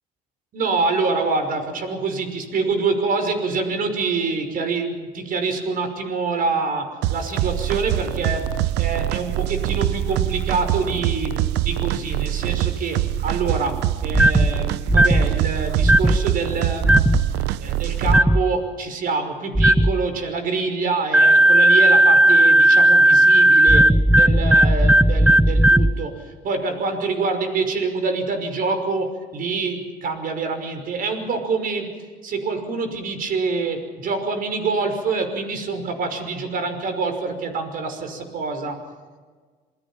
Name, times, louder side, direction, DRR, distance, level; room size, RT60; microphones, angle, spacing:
voice 1, 0.5-8.5 8.8-17.3 17.6-23.8 24.1-31.9 32.2-38.8, right 4 dB, 55° right, 7 dB, 5.7 m, -26 dB
sound 1, 7.0-18.2, right 13 dB, 85° right, 0.6 m, -24 dB
sound 2, 14.1-14.5 14.9-15.3 15.8-16.2 16.8-17.2 18.0-18.4 19.5-19.9 21.1-25.9, right 1 dB, 5° right, 0.7 m, -14 dB
27.5 x 21.0 x 5.8 m, 1.5 s
cardioid pair, 110°, 17 cm